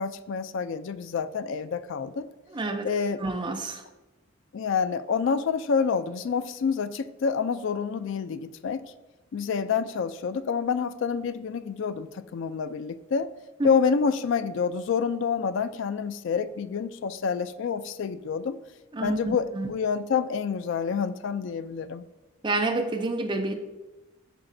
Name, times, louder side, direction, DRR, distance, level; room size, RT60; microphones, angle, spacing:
voice 1, 0.0-2.3 2.8-3.2 4.5-8.8 9.3-13.3 13.6-18.6 19.0-22.0, left 6 dB, 60° left, 13 dB, 0.3 m, -28 dB
voice 2, 2.5-2.9 3.2-3.8 13.6-13.7 18.9-19.7 22.4-23.5, right 2 dB, 20° right, 5 dB, 0.5 m, -28 dB
11.5 x 3.9 x 2.6 m, 1.1 s
head